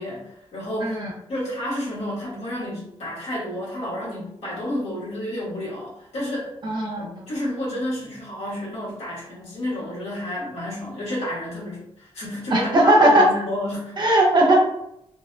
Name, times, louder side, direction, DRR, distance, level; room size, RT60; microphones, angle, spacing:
voice 1, 0.0-1.0 1.3-6.5 7.0-13.9, left 1 dB, 80° left, -6 dB, 1.2 m, -30 dB
voice 2, 6.6-7.1 12.5-13.3 14.0-14.6, right 1 dB, 40° right, -1 dB, 0.6 m, -17 dB
2.6 x 2.1 x 2.5 m, 0.78 s
cardioid pair, 80°, 11 cm